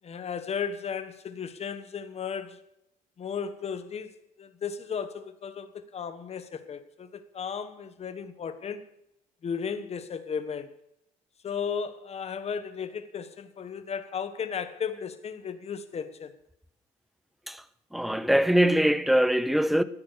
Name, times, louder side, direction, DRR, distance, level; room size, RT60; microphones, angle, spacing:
voice 1, 0.0-2.6 3.2-4.1 4.4-8.8 9.4-10.7 11.4-16.3, left 6 dB, 40° left, 1.3 m, -35 dB
voice 2, 17.9-19.8, equal, ahead, 0.7 m, -22 dB
14.0 x 9.7 x 6.7 m
cardioid pair, 110°, 17 cm